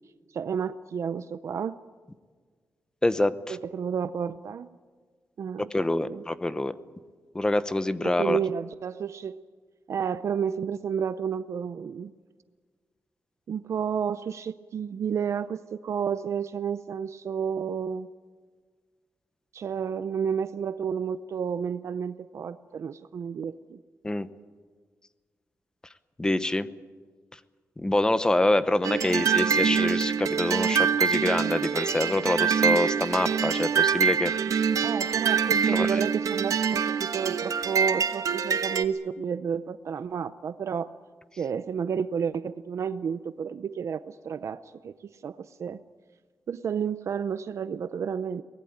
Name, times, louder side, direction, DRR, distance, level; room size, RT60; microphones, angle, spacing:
voice 1, 0.3-1.8 3.5-4.7 5.4-6.2 8.0-9.4 9.9-12.1 13.5-18.1 19.5-23.8 29.0-29.9 34.8-40.9 41.4-44.9 45.2-45.8 46.5-48.4, right 7 dB, 60° right, 13 dB, 0.6 m, -31 dB
voice 2, 3.0-3.6 5.7-6.7 7.3-8.4 24.0-24.3 26.2-26.7 27.8-34.3 35.7-36.0, left 1 dB, 15° left, 13 dB, 0.8 m, -26 dB
sound 1, 28.8-38.8, right 6 dB, 85° right, 1.1 m, -25 dB
23.5 x 19.5 x 8.8 m, 1.6 s
wide cardioid pair, 170°, 6 cm